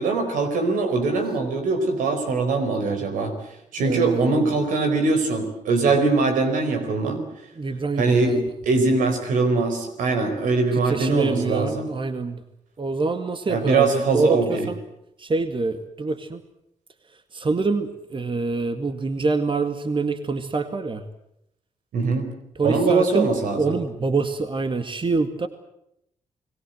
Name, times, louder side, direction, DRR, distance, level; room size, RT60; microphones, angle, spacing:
voice 1, 0.0-3.3 3.7-7.2 8.0-8.4 8.6-11.9 13.5-14.7 21.9-22.2 22.6-23.7, right 3 dB, 85° right, 7 dB, 4.6 m, -22 dB
voice 2, 3.8-4.6 7.1-8.5 10.9-12.4 12.8-14.8 15.2-16.4 17.3-21.0 22.6-23.3 23.6-25.5, right 3 dB, 40° right, 9 dB, 2.1 m, -25 dB
29.5 x 19.5 x 7.9 m, 0.79 s
supercardioid pair, 55°, 13 cm